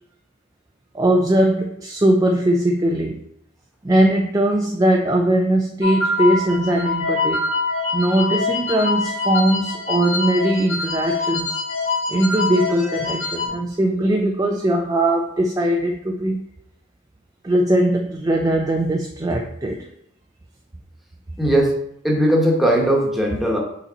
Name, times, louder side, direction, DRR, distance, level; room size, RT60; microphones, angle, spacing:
voice 1, 0.9-3.2 3.8-7.5 7.9-11.6 12.1-16.4 17.4-19.8, right 1 dB, 15° right, 1 dB, 0.4 m, -20 dB
sound 1, 5.8-13.5, left 3 dB, 70° left, 1.3 m, -24 dB
voice 2, 21.4-21.7 22.0-23.6, right 1 dB, ahead, -2 dB, 1.2 m, -18 dB
5.8 x 4.0 x 4.0 m, 0.72 s
head